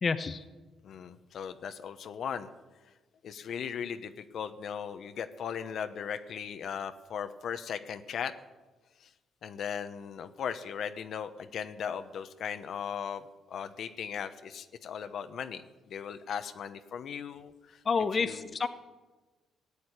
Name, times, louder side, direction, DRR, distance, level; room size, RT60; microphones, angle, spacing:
voice 1, 0.0-0.4 17.8-18.7, left 5 dB, 40° left, 10 dB, 0.9 m, -29 dB
voice 2, 0.8-2.5 3.2-8.3 9.0-9.1 9.4-17.8 18.2-18.5, left 7 dB, 65° left, 9 dB, 1.0 m, -38 dB
15.5 x 8.5 x 9.8 m, 1.2 s
cardioid pair, 90°, 0 cm